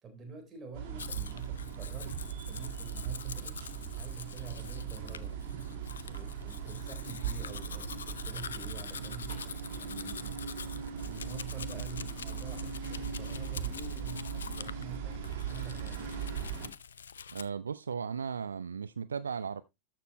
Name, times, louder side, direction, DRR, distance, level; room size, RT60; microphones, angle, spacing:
voice 1, 0.0-2.2 2.5-3.6 3.9-5.3 6.0-9.3 9.7-10.4 11.0-16.2, right 4 dB, 20° right, 3.8 m, -47 dB
sound 1, 0.7-16.7, right 7 dB, 50° right, 2.4 m, -39 dB
Domestic sounds home sounds, 1.0-17.5, left 7 dB, 70° left, 0.5 m, -46 dB
voice 2, 17.3-19.6, right 6 dB, 70° right, 0.4 m, -36 dB
13.5 x 6.7 x 3.0 m
figure-of-eight pair, 90°, 0 cm